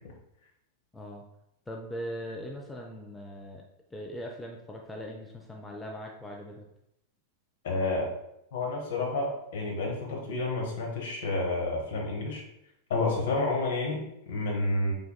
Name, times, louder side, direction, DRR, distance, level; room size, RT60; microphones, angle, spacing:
voice 1, 0.9-1.2 1.7-3.6 3.9-6.7, equal, 10° left, 0 dB, 0.4 m, -40 dB
voice 2, 7.6-8.1 8.5-12.4 12.9-14.9, left 2 dB, 60° left, -1 dB, 1.1 m, -30 dB
4.5 x 3.3 x 2.2 m, 0.80 s
figure-of-eight pair, 90°, 0 cm